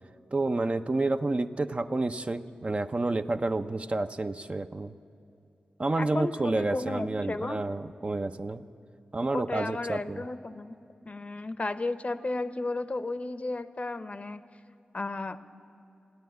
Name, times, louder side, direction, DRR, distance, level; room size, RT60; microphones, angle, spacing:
voice 1, 0.3-4.9 5.8-8.6 9.1-10.2, right 2 dB, 40° right, 8 dB, 0.5 m, -29 dB
voice 2, 6.0-7.6 9.3-10.8 11.0-14.4 14.9-15.4, left 2 dB, 40° left, 12 dB, 0.7 m, -33 dB
16.5 x 9.1 x 9.3 m, 2.7 s
cardioid pair, 45°, 3 cm